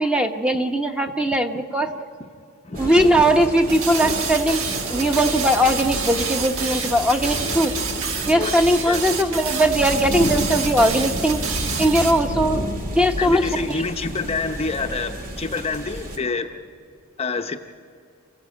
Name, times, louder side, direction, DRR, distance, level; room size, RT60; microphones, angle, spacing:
voice 1, 0.0-1.9 2.8-7.7 8.3-11.4 11.8-12.6 12.9-13.8, equal, 5° right, 5 dB, 1.0 m, -20 dB
sound 1, 2.7-16.2, equal, 40° right, 2.0 m, -31 dB
sound 2, 3.7-12.2, right 5 dB, 65° right, 1.4 m, -28 dB
voice 2, 8.4-9.0 13.2-16.6 17.2-17.6, left 4 dB, 25° left, 5 dB, 0.7 m, -27 dB
28.0 x 15.5 x 8.5 m, 2.4 s
head